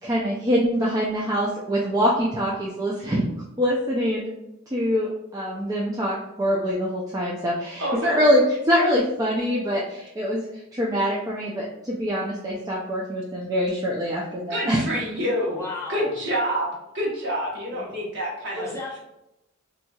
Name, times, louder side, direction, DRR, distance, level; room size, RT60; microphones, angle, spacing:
voice 1, 0.0-3.2 3.6-4.3 4.7-10.4 10.7-14.8, equal, 15° right, -5 dB, 0.4 m, -24 dB
voice 2, 7.8-8.2 14.5-15.6 15.9-16.7 16.9-18.7, equal, 55° right, -4 dB, 1.2 m, -27 dB
voice 3, 15.5-16.1 17.7-17.9 18.5-19.0, left 2 dB, 15° left, -4 dB, 0.7 m, -34 dB
4.2 x 2.7 x 2.3 m, 0.89 s
head